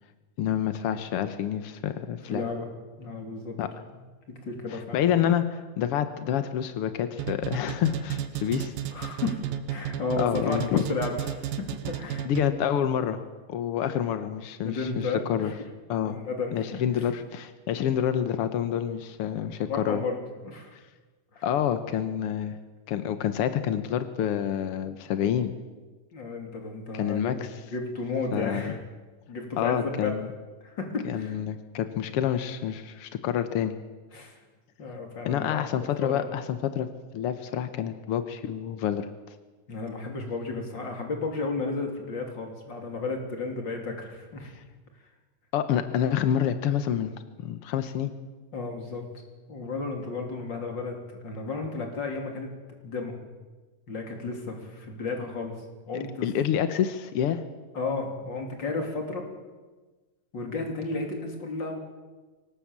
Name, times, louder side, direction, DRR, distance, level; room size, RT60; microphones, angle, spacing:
voice 1, 0.4-2.4 3.6-3.8 4.7-8.7 10.2-10.8 12.2-13.2 13.5-15.5 15.9-16.2 16.5-20.0 21.4-22.6 22.9-25.5 26.9-27.5 28.3-28.7 29.6-30.3 31.0-33.7 35.2-36.9 37.1-39.1 45.5-47.1 47.4-48.1 55.9-57.4, left 9 dB, 80° left, 10 dB, 1.3 m, -28 dB
voice 2, 2.3-2.7 3.0-3.6 4.3-5.0 8.9-9.4 9.7-12.3 14.6-15.5 16.1-17.1 19.4-20.2 20.4-20.8 21.3-21.4 26.1-27.5 27.7-28.8 29.3-30.1 30.6-31.4 34.1-34.4 34.8-35.6 36.0-36.3 39.7-44.5 48.5-49.1 49.5-51.0 51.2-52.5 52.8-53.1 53.9-56.3 57.7-59.3 60.3-61.8, left 3 dB, 30° left, 3 dB, 3.6 m, -33 dB
sound 1, 7.2-12.7, right 11 dB, 80° right, 2.9 m, -33 dB
23.5 x 19.0 x 7.4 m, 1.3 s
omnidirectional pair, 4.0 m